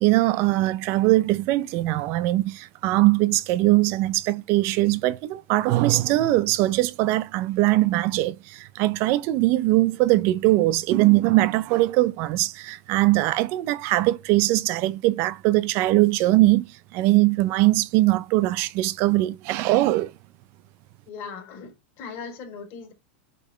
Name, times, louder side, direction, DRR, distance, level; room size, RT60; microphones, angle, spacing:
voice 1, 0.0-16.7 16.9-20.1, right 17 dB, 45° right, 0.5 m, -21 dB
voice 2, 21.1-22.9, left 5 dB, 40° left, 3.4 m, -39 dB
8.3 x 5.3 x 3.2 m
supercardioid pair, 145°, 6 cm